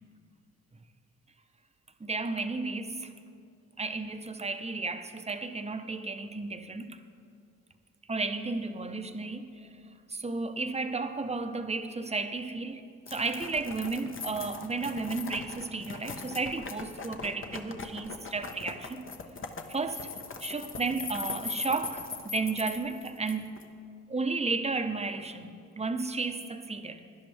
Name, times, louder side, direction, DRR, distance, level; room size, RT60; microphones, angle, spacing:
voice 1, 2.0-2.9 3.8-7.0 8.1-9.5 10.2-12.8 13.1-19.1 19.7-20.1 20.4-23.5 24.1-27.0, right 3 dB, 20° right, 8 dB, 0.9 m, -33 dB
sound 1, 13.1-23.6, left 4 dB, 40° left, 1.1 m, -40 dB
16.5 x 10.5 x 3.4 m, 2.3 s
supercardioid pair, 65°, 33 cm